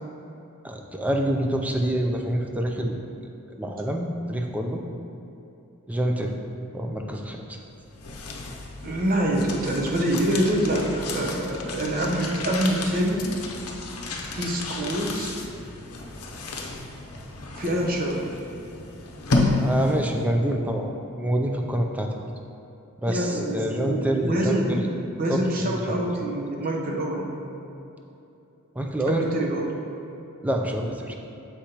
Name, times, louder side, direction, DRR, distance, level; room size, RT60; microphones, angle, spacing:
voice 1, 0.6-3.0 3.6-4.8 5.9-6.4 6.7-7.6 19.6-22.2 23.0-24.8 25.3-26.0 28.8-29.3 30.4-31.2, right 1 dB, 5° right, 2 dB, 0.4 m, -26 dB
sound 1, 7.7-20.2, left 2 dB, 75° left, 0.7 m, -31 dB
voice 2, 8.8-13.3 14.3-15.4 17.6-18.2 23.1-24.9 25.2-27.3 29.1-29.7, right 1 dB, 40° right, 0 dB, 0.7 m, -25 dB
7.2 x 5.0 x 2.9 m, 2.9 s
head